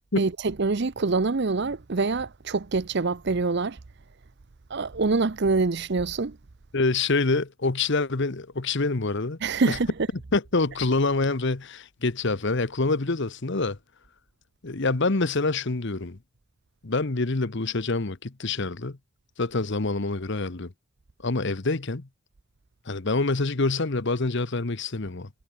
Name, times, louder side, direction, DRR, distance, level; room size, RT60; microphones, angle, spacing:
voice 1, 0.2-3.8 4.7-6.4 9.4-9.9, right 3 dB, 50° right, 0.7 m, -25 dB
voice 2, 6.7-9.4 9.7-9.8 10.3-13.8 14.6-16.2 16.8-19.0 19.4-20.7 21.2-22.1 22.9-25.3, left 3 dB, 55° left, 1.0 m, -26 dB
head